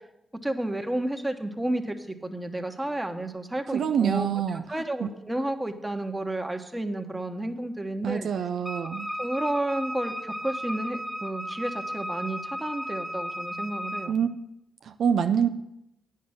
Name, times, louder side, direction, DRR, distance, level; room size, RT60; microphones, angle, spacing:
voice 1, 0.4-8.3 9.2-14.1, right 1 dB, 15° right, 5 dB, 1.2 m, -31 dB
voice 2, 3.7-4.6 5.0-5.1 8.0-9.1 14.1-14.3 14.9-15.5, right 7 dB, 80° right, 8 dB, 0.4 m, -25 dB
Wind instrument woodwind instrument, 8.6-14.1, equal, ahead, 0.8 m, -34 dB
9.3 x 5.7 x 6.4 m, 0.83 s
supercardioid pair, 55°, 0 cm